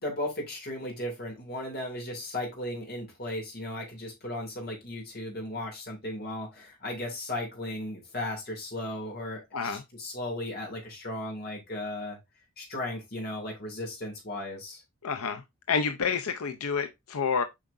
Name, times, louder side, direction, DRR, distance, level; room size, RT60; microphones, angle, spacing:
voice 1, 0.0-12.2 12.6-14.8, left 1 dB, 45° left, 2.7 m, -36 dB
voice 2, 15.0-15.4 15.7-17.4, left 5 dB, 85° left, 0.6 m, -29 dB
7.5 x 4.8 x 2.6 m
head